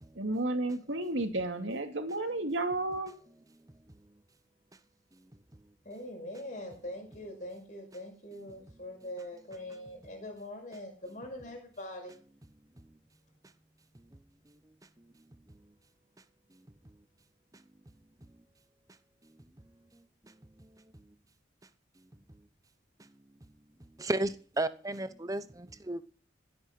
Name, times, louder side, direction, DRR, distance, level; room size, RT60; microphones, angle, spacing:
voice 1, 0.2-3.1, right 2 dB, 90° right, 2.5 m, -32 dB
voice 2, 5.8-12.2, left 1 dB, 40° left, 5.8 m, -43 dB
voice 3, 20.3-20.7 24.0-26.0, right 2 dB, 20° right, 0.8 m, -34 dB
15.5 x 8.6 x 5.9 m
head